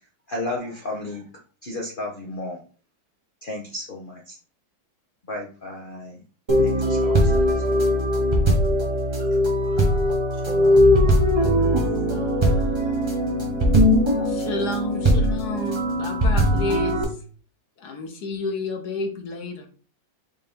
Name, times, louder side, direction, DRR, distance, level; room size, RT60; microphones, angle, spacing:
voice 1, 0.3-1.2 1.6-2.6 3.4-4.4 5.3-6.2 6.6-7.9 9.2-9.9, left 2 dB, 85° left, -2 dB, 0.4 m, -34 dB
sound 1, 6.5-17.0, equal, 30° right, 0.5 m, -20 dB
voice 2, 9.9-11.8, right 4 dB, 70° right, 0 dB, 2.1 m, -41 dB
voice 3, 14.2-17.1 17.8-19.7, left 3 dB, 65° left, 4 dB, 1.2 m, -30 dB
5.6 x 2.7 x 3.4 m, 0.40 s
omnidirectional pair, 2.1 m